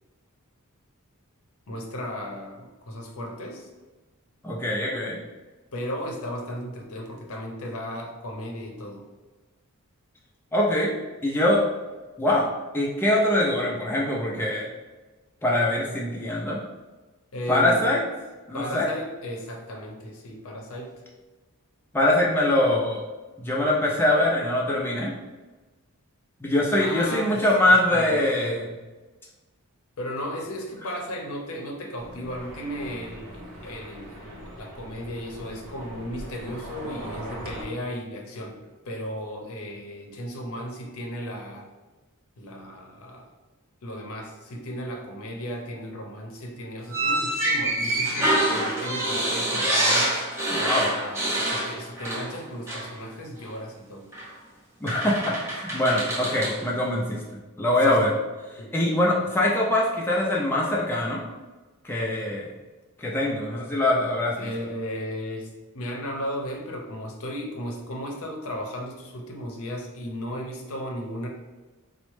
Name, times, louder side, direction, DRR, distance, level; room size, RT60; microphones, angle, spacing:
voice 1, 1.7-3.7 5.7-9.0 17.3-17.8 18.5-20.9 26.8-28.2 30.0-38.6 38.9-41.7 42.4-43.3 43.8-50.1 50.9-54.1 57.8-58.0 58.6-58.7 64.4-71.3, equal, 65° left, 1 dB, 0.6 m, -35 dB
voice 2, 4.4-5.2 10.5-10.9 11.2-11.6 12.2-14.7 15.4-16.6 17.5-18.0 18.5-18.9 21.9-23.0 23.4-25.1 26.4-28.7 50.5-50.9 54.8-57.2 57.6-58.1 58.7-61.2 61.8-62.5 63.0-64.5, left 1 dB, 10° left, -3 dB, 0.3 m, -23 dB
sound 1, 32.0-37.6, right 1 dB, 45° right, 0.7 m, -41 dB
sound 2, 46.9-52.4 52.7-52.9 54.1-54.3 54.9-56.6, right 1 dB, 15° right, 0.8 m, -26 dB
4.1 x 2.0 x 3.1 m, 1.2 s
head